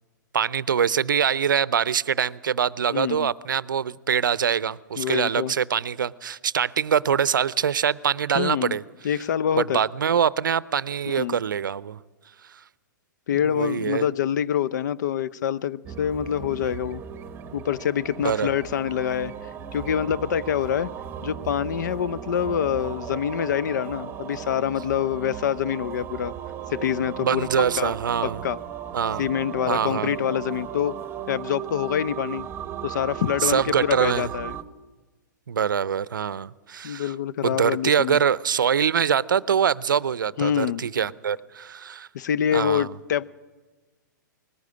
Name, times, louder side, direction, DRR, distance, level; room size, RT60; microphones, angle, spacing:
voice 1, 0.3-8.8 9.5-12.0 13.5-14.1 18.2-18.5 27.2-28.4 28.9-29.3 29.7-30.1 33.4-34.3 35.5-37.1 37.4-42.1 42.5-42.9, right 8 dB, 80° right, 21 dB, 0.5 m, -24 dB
voice 2, 2.9-3.3 5.0-5.5 8.3-8.8 9.0-9.8 11.1-11.4 13.3-17.0 17.5-19.3 19.7-20.9 21.2-26.3 26.7-27.9 28.2-28.6 29.2-31.0 31.3-32.5 32.8-34.5 36.8-38.2 40.4-40.8 42.1-43.2, left 9 dB, 65° left, 18 dB, 0.6 m, -26 dB
sound 1, 15.8-34.6, right 9 dB, 20° right, 1.1 m, -36 dB
19.0 x 15.0 x 9.6 m, 1.3 s
hypercardioid pair, 115°, 11 cm